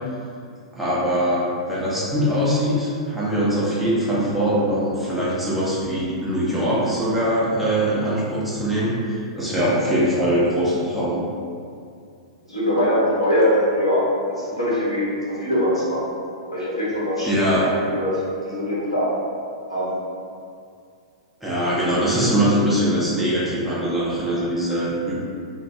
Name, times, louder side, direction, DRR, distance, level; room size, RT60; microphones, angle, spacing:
voice 1, 0.7-11.2 17.2-17.7 21.4-25.2, equal, 5° right, -9 dB, 0.7 m, -22 dB
voice 2, 12.5-14.0 14.3-15.1 15.4-16.0 16.5-18.1 18.5-19.1 19.7-20.0, equal, 90° left, -10 dB, 1.1 m, -22 dB
2.5 x 2.5 x 3.1 m, 2.3 s
figure-of-eight pair, 100°, 3 cm